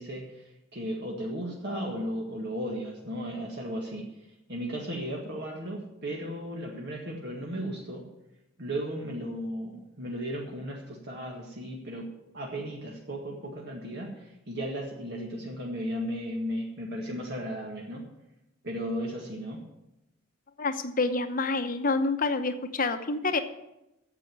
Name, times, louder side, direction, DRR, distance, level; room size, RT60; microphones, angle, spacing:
voice 1, 0.0-4.1 4.5-8.0 8.6-12.1 12.3-18.1 18.6-19.6, equal, 55° right, -1 dB, 1.8 m, -35 dB
voice 2, 20.6-23.4, left 3 dB, 40° left, 8 dB, 0.9 m, -27 dB
9.2 x 7.4 x 8.7 m, 0.91 s
head